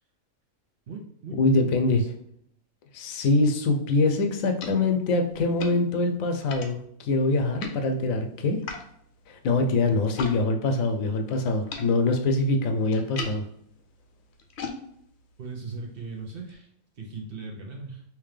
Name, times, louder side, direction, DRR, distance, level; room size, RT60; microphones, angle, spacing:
voice 1, 0.9-2.1 15.4-16.7 17.0-18.0, right 3 dB, 55° right, -1 dB, 0.8 m, -38 dB
voice 2, 1.4-2.0 2.9-8.6 9.3-13.5, left 2 dB, 85° left, 5 dB, 1.0 m, -24 dB
sound 1, 3.9-10.4 10.7-16.6, left 4 dB, 65° left, 0.8 m, -42 dB
3.6 x 2.9 x 3.2 m, 0.67 s
omnidirectional pair, 1.4 m